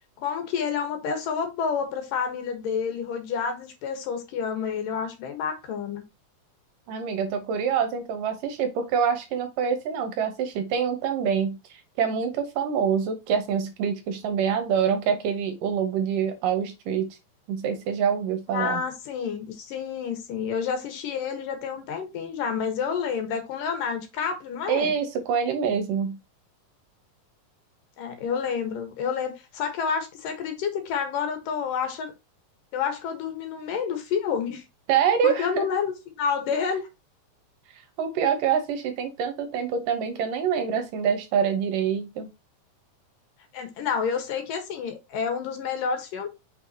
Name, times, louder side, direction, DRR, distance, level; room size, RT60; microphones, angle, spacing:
voice 1, 0.2-6.0 18.5-24.9 28.0-32.1 32.7-34.6 35.2-36.8 43.5-46.3, left 6 dB, 70° left, 2.9 m, -29 dB
voice 2, 6.9-17.2 17.5-18.8 24.7-26.2 34.9-35.7 38.0-42.3, right 7 dB, 75° right, 2.6 m, -26 dB
6.0 x 5.5 x 2.8 m
omnidirectional pair, 4.1 m